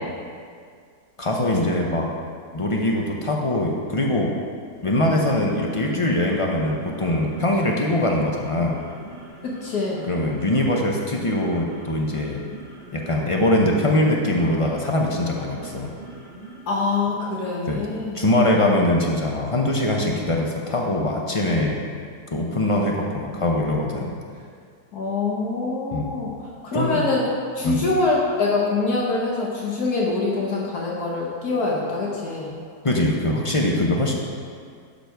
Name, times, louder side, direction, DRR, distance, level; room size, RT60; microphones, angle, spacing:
voice 1, 1.2-2.1 2.5-4.3 4.8-8.8 10.1-12.4 12.9-15.9 17.7-17.9 18.1-21.9 22.3-24.1 25.9-26.1 26.7-27.0 27.6-27.8 32.8-34.2, left 1 dB, 40° left, -1 dB, 0.4 m, -22 dB
sound 1, 4.7-16.7, right 2 dB, 40° right, 1.4 m, -42 dB
voice 2, 9.4-10.0 16.7-18.2 24.9-27.3 27.5-32.5, left 3 dB, 65° left, -3 dB, 1.6 m, -24 dB
11.5 x 5.0 x 4.6 m, 2.1 s
omnidirectional pair, 1.8 m